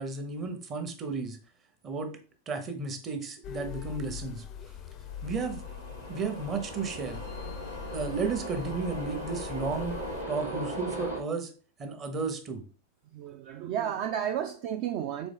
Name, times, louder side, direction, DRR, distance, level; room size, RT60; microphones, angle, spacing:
voice 1, 0.0-1.4 1.8-2.1 2.5-4.4 5.2-5.7 6.1-7.2 7.9-10.0 10.3-11.5 11.8-12.6, right 4 dB, 30° right, 0.8 m, -33 dB
sound 1, 3.4-10.2, left 8 dB, 35° left, 0.4 m, -42 dB
sound 2, 5.1-11.2, right 1 dB, 90° right, 1.2 m, -38 dB
voice 2, 13.1-15.3, right 9 dB, 45° right, 0.3 m, -32 dB
4.0 x 3.6 x 3.4 m
figure-of-eight pair, 90°, 0 cm